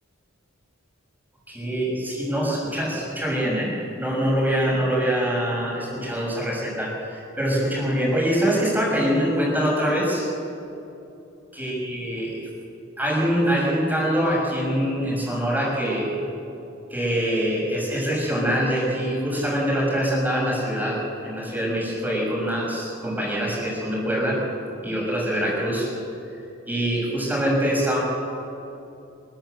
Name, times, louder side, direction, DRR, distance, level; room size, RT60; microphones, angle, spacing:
voice 1, 1.5-3.7 4.0-10.3 11.5-12.5 13.0-16.1 16.9-24.4 24.8-25.9 26.7-28.0, equal, 10° right, -4 dB, 6.4 m, -24 dB
26.0 x 13.5 x 8.0 m, 2.8 s
head